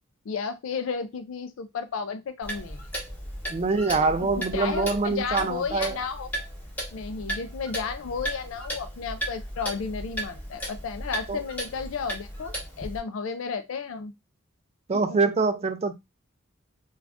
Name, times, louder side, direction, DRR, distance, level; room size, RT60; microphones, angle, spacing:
voice 1, 0.3-2.8 4.2-6.3 6.9-14.1 14.9-15.2, left 5 dB, 70° left, 0.4 m, -33 dB
Clock, 2.4-13.0, right 1 dB, 10° left, 0.7 m, -36 dB
voice 2, 3.5-6.0 11.3-11.4 14.9-15.9, right 4 dB, 30° right, 0.4 m, -24 dB
2.5 x 2.3 x 3.3 m
head